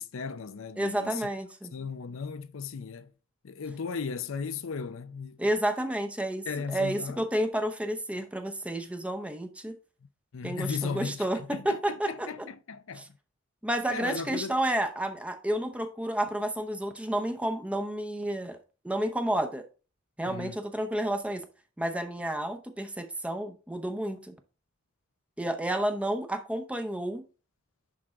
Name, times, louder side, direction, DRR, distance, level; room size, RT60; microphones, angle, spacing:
voice 1, 0.0-1.3 1.7-3.1 3.4-5.4 6.5-7.2 10.3-13.0 13.9-14.6 20.3-20.6, left 5 dB, 70° left, 0.5 m, -36 dB
voice 2, 0.8-1.7 5.4-9.7 10.4-12.3 13.0-13.1 13.6-18.6 18.8-19.7 20.2-21.4 21.8-24.3 25.4-27.2, right 1 dB, 5° right, 0.7 m, -30 dB
10.5 x 3.7 x 3.8 m
head